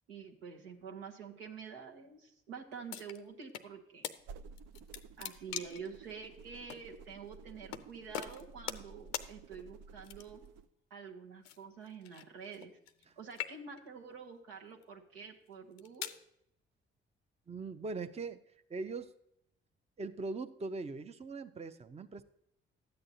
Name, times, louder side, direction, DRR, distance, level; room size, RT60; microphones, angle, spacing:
voice 1, 0.1-4.1 5.2-10.5 10.9-12.8 13.2-16.1, right 6 dB, 85° right, 0 dB, 1.1 m, -48 dB
sound 1, 2.9-3.7 4.0-4.2 4.6-5.9 6.7-6.8 7.7-7.9 8.1-8.9 9.1-9.3 10.0-10.5 11.4-13.0 13.3-13.9 14.6-14.8 15.5-16.2, left 11 dB, 80° left, 0.5 m, -42 dB
sound 2, 4.2-10.7, right 5 dB, 60° right, 0.5 m, -53 dB
voice 2, 17.5-19.1 20.0-22.2, right 3 dB, 20° right, 9 dB, 0.6 m, -41 dB
12.5 x 8.7 x 2.7 m, 0.78 s
hypercardioid pair, 45°, 29 cm